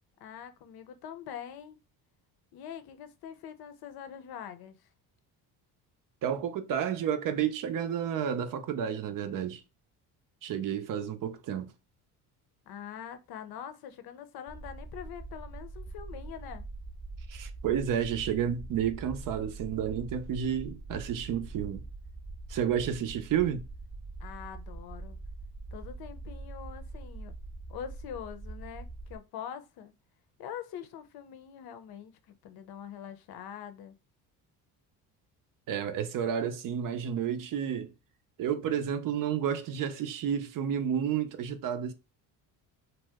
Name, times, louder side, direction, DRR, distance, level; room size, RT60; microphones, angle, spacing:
voice 1, 0.2-1.8 2.5-4.9 12.7-16.7 24.2-25.2 25.7-27.3 27.7-29.9 30.4-32.1 32.4-33.9, left 9 dB, 65° left, 0.6 m, -44 dB
voice 2, 6.2-9.6 10.4-11.7 17.3-21.8 22.5-23.6 35.7-37.9 38.4-41.9, right 8 dB, 55° right, 0.6 m, -31 dB
sound 1, 14.5-29.2, right 2 dB, 15° right, 0.7 m, -43 dB
2.8 x 2.1 x 3.4 m
cardioid pair, 100°, 39 cm